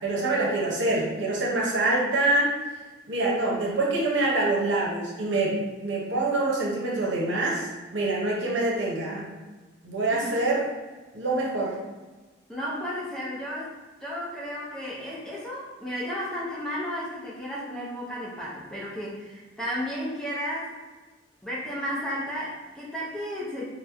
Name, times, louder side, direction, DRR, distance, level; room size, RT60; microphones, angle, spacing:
voice 1, 0.0-2.5 3.1-7.7 7.9-9.3 9.8-10.7 11.1-11.8, right 2 dB, 70° right, -3 dB, 0.8 m, -25 dB
voice 2, 10.1-10.5 12.5-13.7 14.0-20.7 21.4-23.7, equal, 5° left, -7 dB, 0.5 m, -33 dB
3.0 x 2.1 x 3.5 m, 1.3 s
head